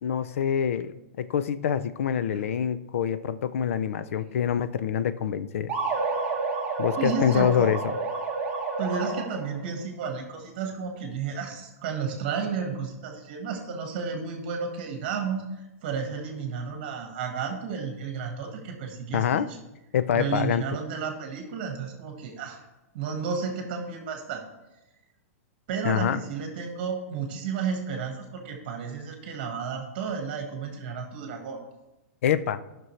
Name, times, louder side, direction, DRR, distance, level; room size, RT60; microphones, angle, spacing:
voice 1, 0.0-5.7 6.8-8.0 19.1-19.5 19.9-20.6 25.8-26.2 32.2-32.6, left 8 dB, 60° left, 14 dB, 0.5 m, -26 dB
sound 1, 5.7-9.6, right 3 dB, 15° right, 1.2 m, -29 dB
voice 2, 7.0-7.7 8.8-19.4 20.1-22.6 22.9-24.5 25.7-31.6, right 6 dB, 35° right, 3 dB, 1.5 m, -32 dB
14.0 x 6.0 x 3.2 m, 1.0 s
supercardioid pair, 180°, 8 cm